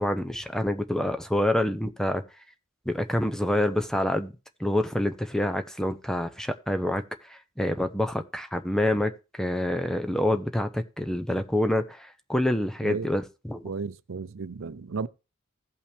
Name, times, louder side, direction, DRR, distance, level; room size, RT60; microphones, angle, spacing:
voice 1, 0.0-2.2 2.9-4.3 4.6-7.0 7.3-13.6, left 1 dB, 5° left, 0.6 m, -27 dB
voice 2, 13.6-15.1, right 4 dB, 80° right, 0.5 m, -34 dB
16.0 x 5.6 x 3.4 m
head